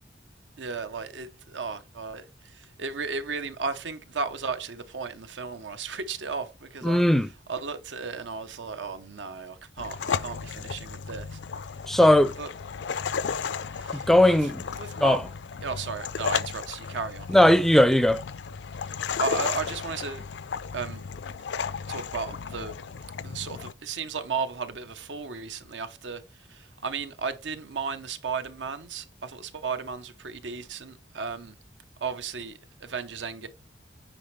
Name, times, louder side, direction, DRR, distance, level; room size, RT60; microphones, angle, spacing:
voice 1, 0.6-7.0 7.5-11.4 12.4-12.5 13.7-14.5 14.8-15.2 15.6-17.3 18.8-20.2 20.7-21.0 21.9-22.8 23.2-26.2 26.5-31.5 32.0-33.5, right 5 dB, 85° right, 0.8 m, -34 dB
voice 2, 6.8-7.3 11.9-12.3 13.9-14.6 15.0-15.2 17.3-18.2, left 1 dB, ahead, 0.4 m, -18 dB
sound 1, 9.8-23.7, left 6 dB, 75° left, 0.4 m, -34 dB
9.1 x 4.2 x 3.2 m
head